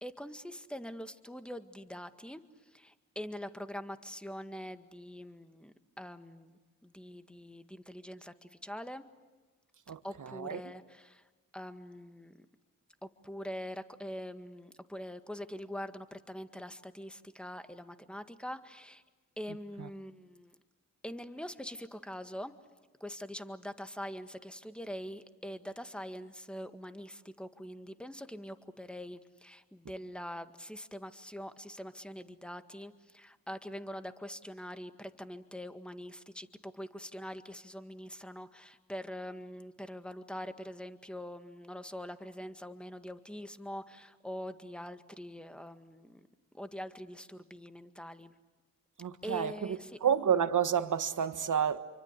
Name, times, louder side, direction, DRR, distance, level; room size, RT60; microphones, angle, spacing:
voice 1, 0.0-2.4 2.7-9.0 10.0-11.2 11.5-12.3 13.0-19.0 19.4-20.5 21.0-22.5 23.0-46.2 46.5-48.3 49.2-49.9, equal, 5° left, 1.8 m, -44 dB
voice 2, 9.9-10.6 19.5-19.9 49.0-51.8, right 8 dB, 55° right, 1.5 m, -30 dB
27.5 x 24.5 x 8.3 m
supercardioid pair, 45°, 37 cm